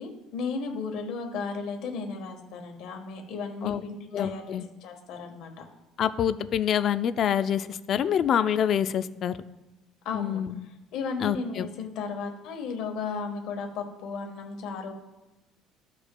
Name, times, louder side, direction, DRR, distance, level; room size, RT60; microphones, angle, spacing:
voice 1, 0.0-4.4 4.8-5.6 10.0-10.4 10.9-14.9, left 4 dB, 60° left, 3 dB, 1.2 m, -34 dB
voice 2, 4.1-4.7 6.0-9.4 10.1-10.7 11.2-11.7, left 9 dB, 35° left, 12 dB, 0.3 m, -26 dB
14.5 x 4.9 x 2.2 m, 1.0 s
cardioid pair, 165°, 0 cm